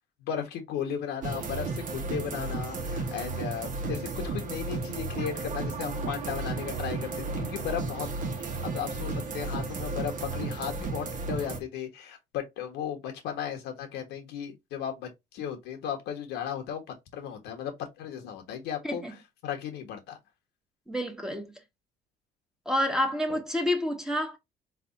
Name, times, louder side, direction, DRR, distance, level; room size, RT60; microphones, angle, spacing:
voice 1, 0.2-16.8 17.1-20.2 23.3-23.4, left 8 dB, 85° left, 1.3 m, -36 dB
sound 1, 1.2-11.6, right 3 dB, 50° right, 1.2 m, -33 dB
voice 2, 20.9-21.5 22.7-24.4, left 1 dB, 5° right, 1.1 m, -28 dB
4.0 x 3.4 x 2.6 m
cardioid pair, 110°, 17 cm